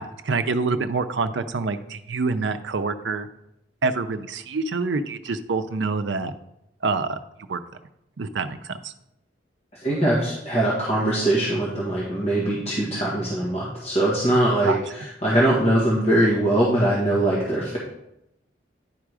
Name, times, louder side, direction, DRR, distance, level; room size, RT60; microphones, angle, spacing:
voice 1, 0.0-3.3 3.8-6.3 6.8-7.2 7.5-7.6 8.2-8.9 14.6-14.8, right 4 dB, 80° right, 9 dB, 0.5 m, -26 dB
voice 2, 9.8-17.8, right 1 dB, 35° left, -7 dB, 1.7 m, -22 dB
10.5 x 3.7 x 4.8 m, 0.83 s
head